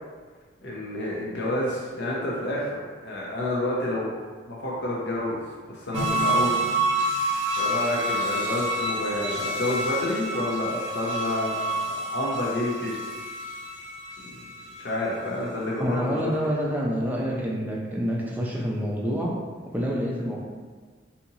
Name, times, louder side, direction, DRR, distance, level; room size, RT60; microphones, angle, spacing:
voice 1, 0.6-4.1 4.5-6.6 7.6-13.0 14.2-14.4 14.8-16.3, left 1 dB, 60° left, -5 dB, 0.7 m, -29 dB
sound 1, 5.9-15.3 15.7-15.8, right 1 dB, 70° right, 0.5 m, -28 dB
voice 2, 15.8-19.3 19.7-20.4, equal, 10° right, -4 dB, 0.5 m, -27 dB
4.1 x 2.8 x 2.7 m, 1.4 s
head